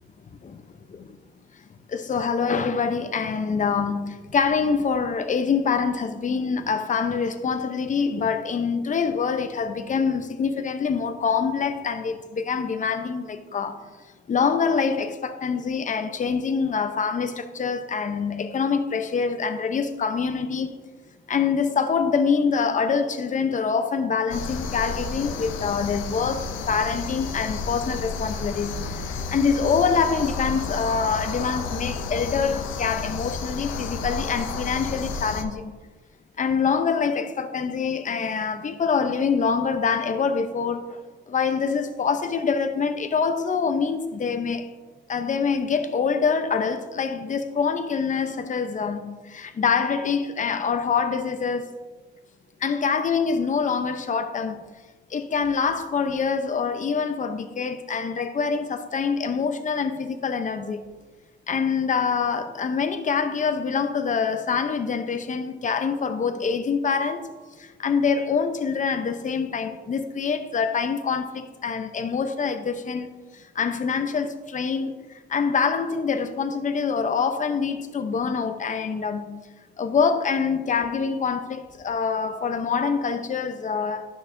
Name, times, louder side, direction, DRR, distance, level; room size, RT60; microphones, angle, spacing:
voice 1, 1.9-13.8 14.3-20.7 21.3-35.7 36.4-40.8 41.3-44.7 45.1-51.7 52.6-54.6 55.1-60.8 61.5-67.3 67.8-73.1 73.6-74.9 75.3-79.4 79.8-84.0, left 5 dB, 40° left, 0.8 m, -25 dB
sound 1, 24.3-35.4, left 4 dB, 80° left, 0.8 m, -31 dB
12.0 x 6.1 x 2.7 m
cardioid pair, 90°, 20 cm